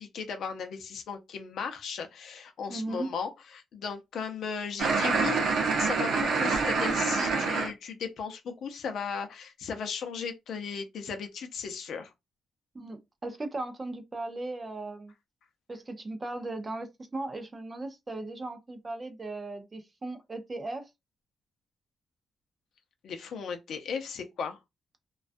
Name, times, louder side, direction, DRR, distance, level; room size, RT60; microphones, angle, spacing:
voice 1, 0.0-5.4 5.8-12.1 23.0-24.6, left 6 dB, 70° left, 0.5 m, -36 dB
voice 2, 2.7-3.1 12.7-15.1 15.7-20.9, right 2 dB, 25° right, 0.5 m, -37 dB
sound 1, 4.8-7.7, right 4 dB, 75° right, 0.7 m, -26 dB
2.3 x 2.2 x 2.5 m
cardioid pair, 130°, 0 cm